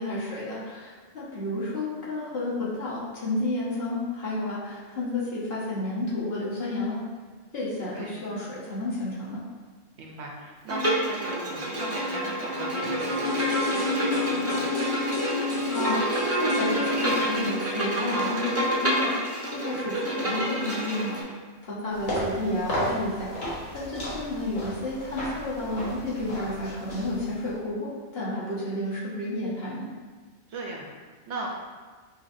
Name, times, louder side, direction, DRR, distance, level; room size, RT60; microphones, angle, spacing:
voice 1, 0.0-7.0 7.5-9.4 15.7-21.4 21.6-29.9, left 2 dB, 55° left, -7 dB, 1.3 m, -31 dB
voice 2, 10.0-14.7 19.7-19.9 22.4-22.5 30.5-31.5, right 2 dB, 70° right, -1 dB, 0.8 m, -38 dB
Bowed string instrument, 10.7-21.2, right 1 dB, 15° right, 0.6 m, -28 dB
sound 1, 13.0-18.9 19.2-19.3, left 3 dB, 30° left, 1.1 m, -30 dB
sound 2, 21.9-27.5, equal, 75° left, 1.4 m, -34 dB
5.6 x 2.8 x 2.5 m, 1.4 s
omnidirectional pair, 1.3 m